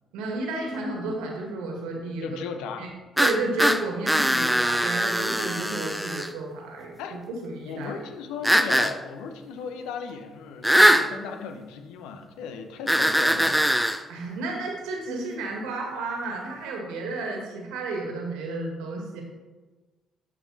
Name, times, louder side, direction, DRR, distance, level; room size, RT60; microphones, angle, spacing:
voice 1, 0.1-2.4 2.8-2.9 3.2-7.9 14.1-19.2, right 2 dB, 85° right, 0 dB, 1.8 m, -32 dB
voice 2, 2.2-2.9 7.0-7.2 7.6-13.6, left 6 dB, 80° left, 6 dB, 0.8 m, -36 dB
sound 1, 3.2-6.3 8.4-8.9 10.6-11.1 12.9-14.0, equal, ahead, 0.6 m, -21 dB
12.0 x 4.2 x 4.1 m, 1.3 s
supercardioid pair, 60°, 0 cm